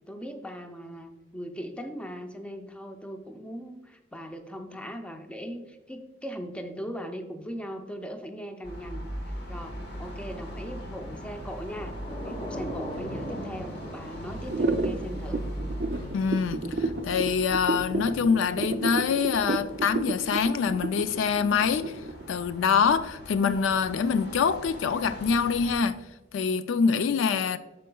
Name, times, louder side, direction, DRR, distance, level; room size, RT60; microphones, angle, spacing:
voice 1, 0.1-9.0 9.5-15.4, equal, 5° left, 0.5 m, -39 dB
sound 1, 8.6-25.7, equal, 60° left, 1.3 m, -40 dB
Thunder / Rain, 11.4-22.0, equal, 25° left, 1.1 m, -43 dB
sound 2, 14.5-22.3, right 3 dB, 50° right, 0.4 m, -30 dB
voice 2, 16.1-22.0 22.3-26.0 26.3-27.6, left 6 dB, 80° left, 0.4 m, -25 dB
9.0 x 6.6 x 2.3 m
head